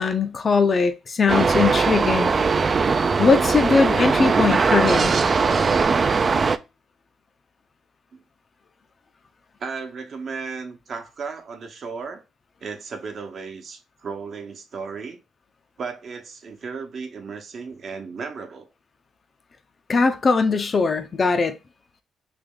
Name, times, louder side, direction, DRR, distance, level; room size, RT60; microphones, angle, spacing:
voice 1, 0.0-2.3 2.8-5.1 19.9-21.6, left 4 dB, 40° left, 0.5 m, -20 dB
sound 1, 1.3-6.6, right 4 dB, 35° right, 0.3 m, -20 dB
voice 2, 9.6-12.2 12.6-15.2 15.8-18.7, right 5 dB, 55° right, 0.9 m, -35 dB
3.3 x 3.1 x 3.6 m
cardioid pair, 90°, 0 cm